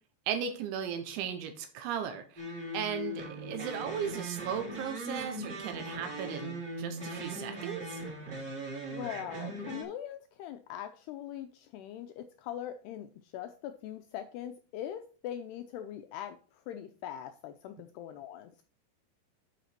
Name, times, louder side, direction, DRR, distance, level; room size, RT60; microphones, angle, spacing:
voice 1, 0.3-2.5 2.7-8.0, right 8 dB, 80° right, 7 dB, 3.4 m, -36 dB
sound 1, 2.4-9.8, right 1 dB, 30° right, 1.9 m, -39 dB
voice 2, 8.9-18.6, left 10 dB, 85° left, 8 dB, 2.3 m, -42 dB
11.0 x 5.0 x 4.3 m, 0.39 s
omnidirectional pair, 5.4 m